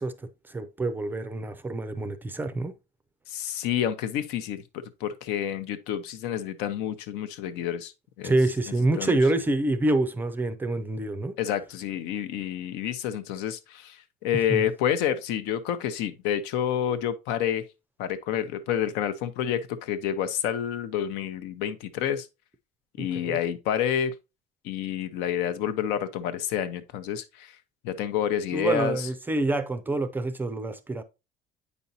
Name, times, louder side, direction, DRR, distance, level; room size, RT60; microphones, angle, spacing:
voice 1, 0.0-2.7 8.2-11.4 14.3-14.7 23.0-23.4 28.5-31.0, right 2 dB, 10° right, 0.4 m, -27 dB
voice 2, 3.3-4.6 5.0-7.9 8.2-8.3 9.0-9.2 11.4-17.6 18.0-22.3 23.0-24.1 24.6-27.5 27.8-29.1, left 9 dB, 85° left, 0.9 m, -29 dB
8.3 x 5.3 x 2.8 m
cardioid pair, 170°, 17 cm